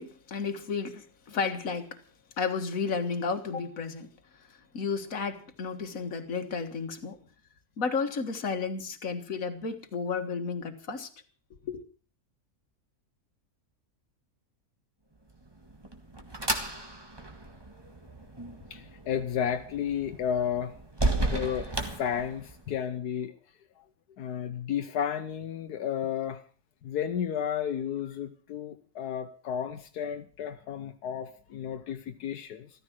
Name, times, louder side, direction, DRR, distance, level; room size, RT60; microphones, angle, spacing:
voice 1, 0.0-2.0 2.4-4.1 4.5-7.2 7.8-11.1 11.6-11.8, left 5 dB, 60° left, 2.0 m, -32 dB
sound 1, 15.4-22.8, right 2 dB, 15° right, 1.7 m, -34 dB
voice 2, 18.7-20.7 21.1-23.3 23.8-23.9 24.2-26.4 26.8-32.7, left 8 dB, 85° left, 1.4 m, -32 dB
14.5 x 14.0 x 6.2 m
omnidirectional pair, 1.6 m